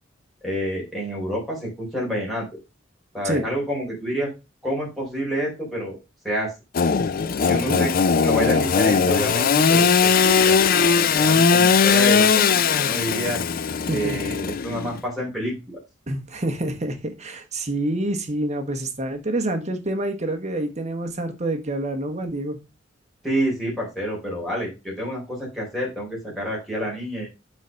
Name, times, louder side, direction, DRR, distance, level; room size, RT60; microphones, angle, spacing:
voice 1, 0.4-2.5 3.1-4.3 4.6-6.0 6.2-6.5 7.5-7.9 8.2-9.9 10.2-13.4 13.9-15.8 23.2-27.4, equal, ahead, -4 dB, 3.6 m, -28 dB
Engine / Sawing, 6.7-15.0, left 5 dB, 50° left, 0.4 m, -19 dB
voice 2, 7.4-7.8 13.9-14.3 16.1-22.6, right 1 dB, 35° right, 6 dB, 1.2 m, -27 dB
6.3 x 4.5 x 5.1 m, 0.26 s
head